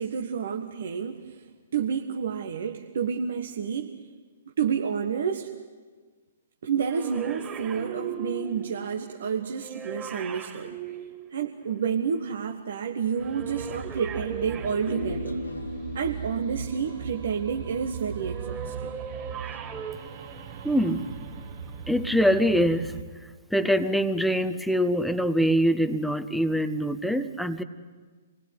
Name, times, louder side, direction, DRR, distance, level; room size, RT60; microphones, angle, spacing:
voice 1, 0.0-1.4 1.7-3.9 4.6-5.5 6.6-10.8 11.3-15.4 15.9-18.9, right 7 dB, 55° right, 3 dB, 1.6 m, -29 dB
sound 1, 6.9-11.9 13.1-15.7 18.1-19.9, right 7 dB, 20° right, 3.3 m, -39 dB
sound 2, 13.2-23.0, right 6 dB, 40° right, 2.3 m, -39 dB
Human voice, 14.8-19.5 19.8-19.9, left 2 dB, 80° left, 1.6 m, -38 dB
voice 2, 20.6-21.1 21.9-22.9 23.5-27.6, equal, ahead, 11 dB, 1.1 m, -24 dB
27.5 x 20.5 x 9.6 m, 1.4 s
figure-of-eight pair, 120°, 0 cm